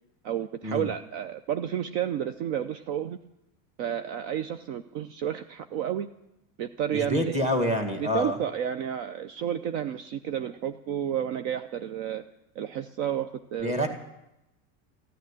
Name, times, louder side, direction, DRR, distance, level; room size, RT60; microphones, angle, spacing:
voice 1, 0.2-3.2 3.8-6.1 6.6-7.3 8.0-12.2 12.5-13.7, right 9 dB, 55° right, 10 dB, 0.7 m, -31 dB
voice 2, 6.9-8.4 13.6-13.9, equal, 15° right, 5 dB, 1.9 m, -27 dB
15.0 x 9.2 x 9.8 m, 0.88 s
supercardioid pair, 160°, 41 cm